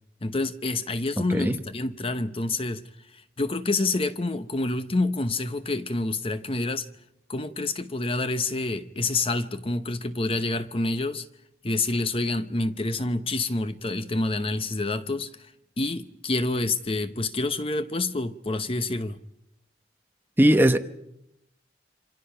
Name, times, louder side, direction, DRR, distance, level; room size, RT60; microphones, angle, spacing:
voice 1, 0.2-2.8 3.1-6.9 7.3-11.3 11.6-15.5 15.8-19.2, left 2 dB, 30° left, 0.8 m, -28 dB
voice 2, 20.4-20.8, right 1 dB, 10° right, 1.0 m, -18 dB
28.0 x 26.0 x 5.7 m
head